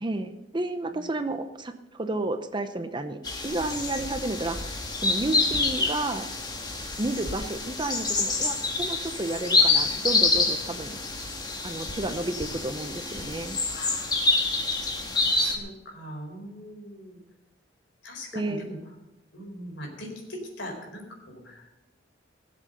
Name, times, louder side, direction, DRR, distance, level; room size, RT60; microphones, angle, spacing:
voice 1, 0.0-4.6 5.0-6.3 7.0-11.0 11.6-13.6 18.3-18.6, right 2 dB, 25° right, 8 dB, 0.7 m, -31 dB
sound 1, 3.2-15.6, left 3 dB, 20° left, 1.6 m, -27 dB
voice 2, 13.7-14.7 15.4-17.2 18.0-18.8 19.3-21.7, equal, 65° left, 1 dB, 4.5 m, -41 dB
18.0 x 7.6 x 6.7 m, 0.96 s
head